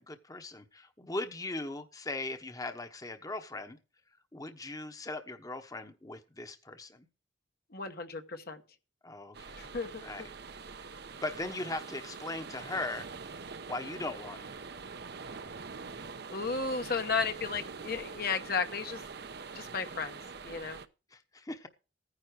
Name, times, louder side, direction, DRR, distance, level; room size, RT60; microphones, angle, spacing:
voice 1, 0.0-3.8 4.3-7.1 9.0-9.7 10.0-10.3 11.1-13.1 13.7-14.5 21.1-21.7, left 2 dB, 20° left, 1.0 m, -39 dB
voice 2, 7.7-8.6 9.6-10.0 16.3-19.0 19.5-20.2 20.4-20.8, left 5 dB, 55° left, 1.1 m, -34 dB
sound 1, 9.3-20.9, right 4 dB, 60° right, 0.8 m, -44 dB
15.0 x 9.9 x 4.7 m
head